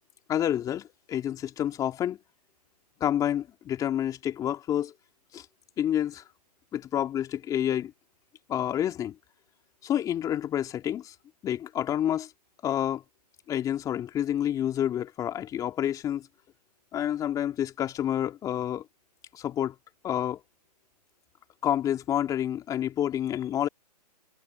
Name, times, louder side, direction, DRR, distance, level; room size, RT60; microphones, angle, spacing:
voice 1, 0.3-2.2 3.0-4.9 5.3-5.4 5.8-6.2 6.7-7.9 8.5-9.2 9.8-11.1 11.4-12.3 12.6-13.0 13.5-16.3 16.9-18.8 19.3-19.7 20.0-20.4 21.6-23.7, left 10 dB, 15° left, 3.2 m, -28 dB
hypercardioid pair, 140°, 21 cm